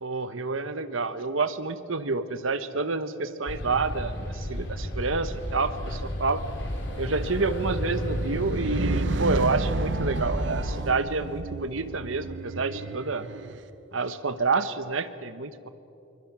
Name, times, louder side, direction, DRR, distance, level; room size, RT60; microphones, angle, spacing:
voice 1, 0.0-6.4 7.0-13.3 13.9-15.7, right 3 dB, 80° right, 12 dB, 1.1 m, -28 dB
sound 1, 3.5-10.8, equal, 60° left, 3.6 m, -33 dB
sound 2, 7.2-13.6, right 2 dB, 65° right, 0.7 m, -32 dB
27.0 x 24.0 x 6.2 m, 2.8 s
head